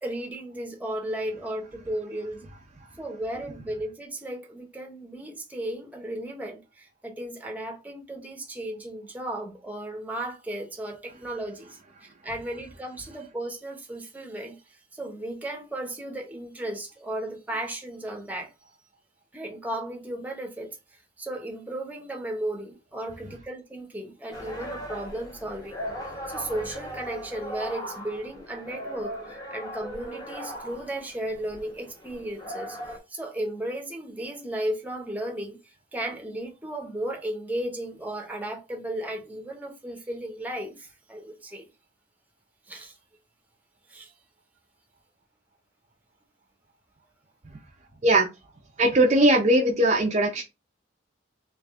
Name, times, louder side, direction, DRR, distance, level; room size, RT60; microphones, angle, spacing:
voice 1, 0.0-2.5 3.0-14.5 14.9-18.5 19.3-20.8 21.2-25.8 26.3-32.8 33.1-35.6 35.9-41.7 42.7-43.0 43.9-44.1, right 1 dB, 10° right, 0.9 m, -35 dB
sound 1, 24.3-33.0, equal, 20° left, 1.2 m, -38 dB
voice 2, 48.8-50.4, right 1 dB, 35° right, 0.6 m, -20 dB
3.4 x 3.0 x 3.6 m
head